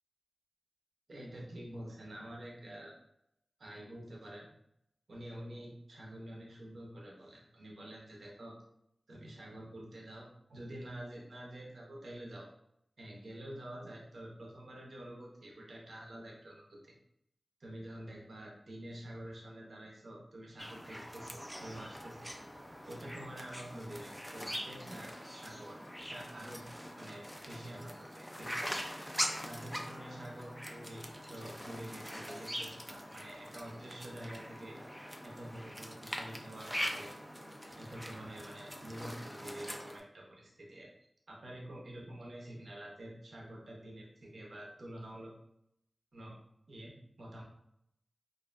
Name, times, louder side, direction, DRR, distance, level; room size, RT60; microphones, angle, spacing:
voice 1, 1.1-2.9 3.6-4.5 5.1-8.6 9.1-12.5 13.0-17.0 17.6-22.3 22.8-26.7 26.9-28.7 29.4-34.8 35.2-37.1 37.7-40.9 41.3-45.3 46.1-46.4 46.7-47.4, right 1 dB, 80° right, -2 dB, 0.6 m, -48 dB
sound 1, 20.6-40.0, equal, 5° left, 0.3 m, -43 dB
2.5 x 2.1 x 2.4 m, 0.75 s
cardioid pair, 50°, 0 cm